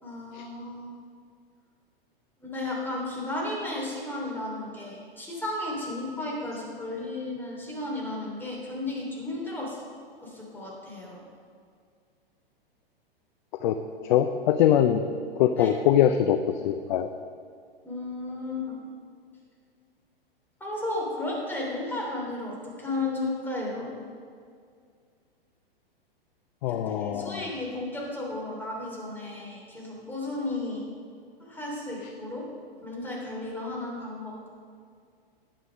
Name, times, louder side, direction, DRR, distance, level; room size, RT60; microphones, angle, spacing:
voice 1, 0.0-0.9 2.4-9.8 10.2-11.2 15.6-15.7 17.8-18.8 20.6-23.9 26.6-30.8 31.4-32.4 32.8-34.4, left 2 dB, 5° left, -3 dB, 3.1 m, -34 dB
voice 2, 14.0-15.0 15.4-16.4 16.6-17.1 26.6-27.4, left 10 dB, 50° left, 8 dB, 0.6 m, -22 dB
11.0 x 7.8 x 5.1 m, 2.2 s
hypercardioid pair, 110°, 30 cm